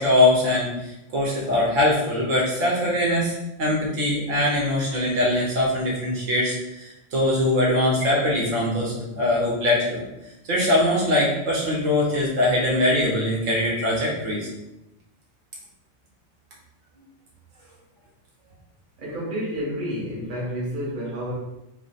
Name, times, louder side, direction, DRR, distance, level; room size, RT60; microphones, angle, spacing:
voice 1, 0.0-10.0 10.5-14.5, left 1 dB, 85° right, -4 dB, 1.3 m, -22 dB
voice 2, 19.0-21.3, equal, 45° right, -5 dB, 1.1 m, -30 dB
3.3 x 2.1 x 4.0 m, 0.91 s
omnidirectional pair, 1.3 m